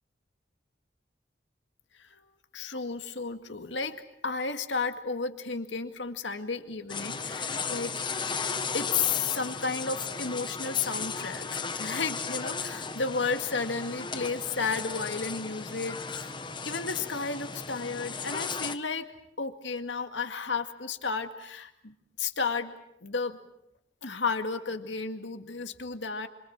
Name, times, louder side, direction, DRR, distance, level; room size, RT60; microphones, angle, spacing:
voice 1, 2.5-4.0 4.2-7.9 8.7-16.3 16.6-19.1 19.4-22.8 23.0-23.4 24.0-26.3, left 4 dB, 80° left, 7 dB, 2.1 m, -33 dB
sound 1, 6.9-18.8, left 5 dB, 25° left, 1.2 m, -35 dB
26.5 x 25.0 x 7.4 m, 0.81 s
head